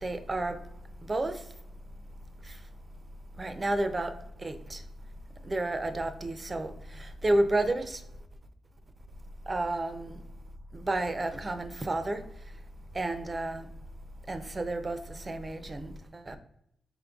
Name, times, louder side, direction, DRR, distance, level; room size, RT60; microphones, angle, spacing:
voice 1, 0.0-0.6 1.0-1.5 2.4-2.6 3.4-4.8 5.4-8.0 9.5-10.2 10.7-12.2 12.9-13.7 14.3-16.4, right 2 dB, 25° right, 0.4 m, -31 dB
5.2 x 4.0 x 2.3 m
wide cardioid pair, 150°, 0 cm